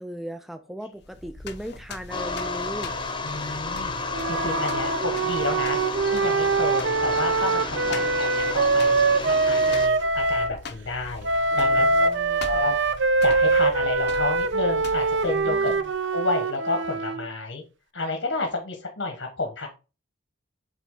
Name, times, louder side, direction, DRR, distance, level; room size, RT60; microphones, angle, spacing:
voice 1, 0.0-3.0 7.8-8.2 11.5-12.7 15.4-15.9, equal, ahead, 0.3 m, -38 dB
sound 1, 1.0-16.1, left 3 dB, 55° left, 0.7 m, -42 dB
sound 2, 2.1-9.9, left 3 dB, 25° left, 0.8 m, -32 dB
voice 2, 3.2-4.0 4.3-5.8 6.1-12.1 12.4-12.8 13.2-15.7 16.0-17.6 17.9-19.7, left 3 dB, 75° left, 1.3 m, -30 dB
Wind instrument woodwind instrument, 4.1-10.5 11.2-17.3, right 3 dB, 65° right, 0.5 m, -23 dB
8.2 x 3.5 x 3.8 m
head